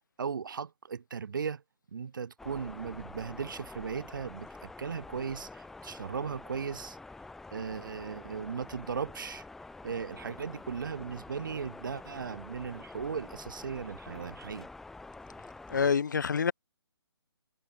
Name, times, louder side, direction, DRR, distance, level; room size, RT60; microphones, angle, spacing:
voice 1, 0.2-1.6 1.9-7.0 7.5-9.4 9.8-14.7, right 6 dB, 45° right, 1.0 m, -37 dB
sound 1, 2.0-2.2 2.7-2.8 3.3-3.4 3.9-4.0 4.5-4.6 5.1-5.2 5.7-5.8 6.3-6.4 6.9-7.0 7.5-7.6 8.1-8.2 8.7-8.9 9.3-9.5 9.9-10.0 10.5-10.7 11.1-11.3 11.7-11.9 12.3-12.4 13.0-13.1 13.6-13.7 14.2-14.3, left 15 dB, 25° left, 6.5 m, -73 dB
sound 2, 2.4-15.9, left 3 dB, ahead, 0.9 m, -47 dB
voice 2, 15.7-16.5, left 6 dB, 45° left, 0.4 m, -27 dB
figure-of-eight pair, 140°, 14 cm